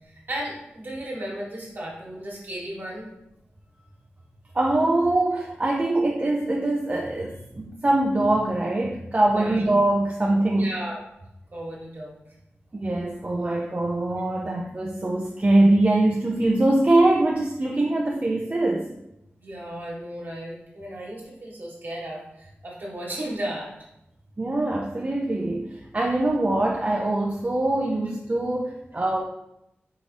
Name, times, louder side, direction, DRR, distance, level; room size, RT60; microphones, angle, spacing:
voice 1, 0.3-3.1 9.3-9.6 10.5-11.0 11.5-12.2 19.4-23.7, right 1 dB, 55° right, -3 dB, 1.4 m, -34 dB
voice 2, 4.5-10.7 12.7-18.9 24.4-29.2, right 2 dB, 35° right, -1 dB, 0.5 m, -23 dB
4.6 x 2.7 x 3.2 m, 0.85 s
cardioid pair, 60°, 4 cm